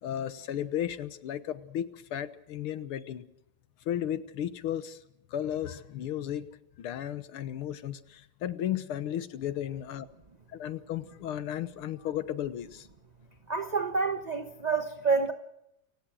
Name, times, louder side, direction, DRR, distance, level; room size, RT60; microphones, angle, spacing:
voice 1, 0.0-3.2 3.9-5.0 5.3-6.5 6.8-10.1 10.5-12.9, left 11 dB, 85° left, 13 dB, 1.9 m, -34 dB
voice 2, 13.5-15.3, right 4 dB, 35° right, 7 dB, 0.7 m, -28 dB
28.5 x 17.0 x 6.3 m, 0.82 s
omnidirectional pair, 2.3 m